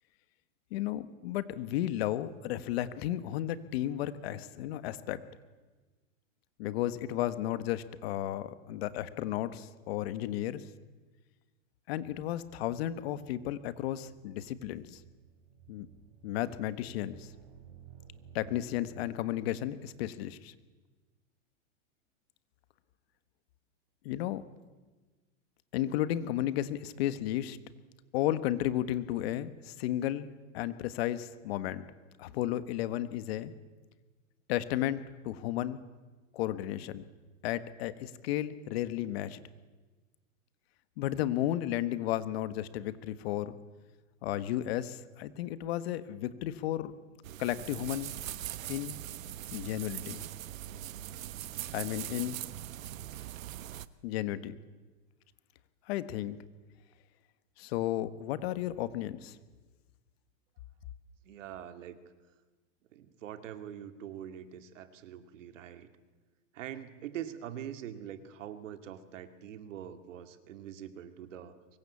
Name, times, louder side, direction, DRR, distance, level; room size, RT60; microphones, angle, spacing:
voice 1, 0.7-5.2 6.6-10.6 11.9-15.0 15.7-15.9 16.2-17.3 18.3-20.5 24.0-24.4 25.7-27.6 28.1-30.3 30.5-31.8 32.2-33.5 34.5-35.8 36.3-37.0 37.4-39.4 41.0-43.6 44.2-46.9 47.4-48.1 48.7-48.9 49.5-50.2 51.7-52.4 54.0-54.5 55.9-56.4 57.6-59.4, left 13 dB, 50° left, 13 dB, 1.4 m, -33 dB
sound 1, 12.0-19.1, right 9 dB, 50° right, 4.4 m, -56 dB
sound 2, 47.2-53.9, right 12 dB, 90° right, 1.2 m, -41 dB
voice 2, 61.2-62.0 62.9-65.9 66.5-71.6, right 10 dB, 70° right, 9 dB, 2.4 m, -44 dB
24.0 x 21.5 x 8.5 m, 1.3 s
supercardioid pair, 155°, 39 cm